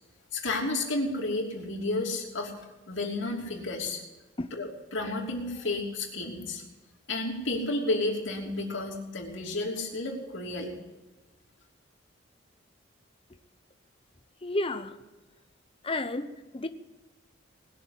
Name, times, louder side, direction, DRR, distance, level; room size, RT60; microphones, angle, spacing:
voice 1, 0.3-2.5 2.9-4.0 4.5-6.6 7.1-10.7, left 2 dB, 70° left, 3.1 m, -31 dB
voice 2, 14.4-15.0 15.8-16.7, left 2 dB, 30° left, 0.8 m, -31 dB
20.0 x 7.0 x 8.5 m
head